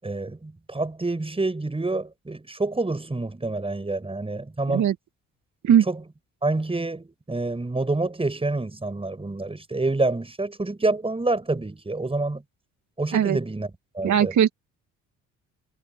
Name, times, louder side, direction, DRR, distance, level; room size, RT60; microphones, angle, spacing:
voice 1, 0.0-4.9 5.9-6.0 6.4-12.4 13.0-13.7 13.9-14.3, right 2 dB, 15° right, 7.4 m, -27 dB
voice 2, 14.0-14.5, right 9 dB, 60° right, 2.2 m, -19 dB
supercardioid pair, 75°, 34 cm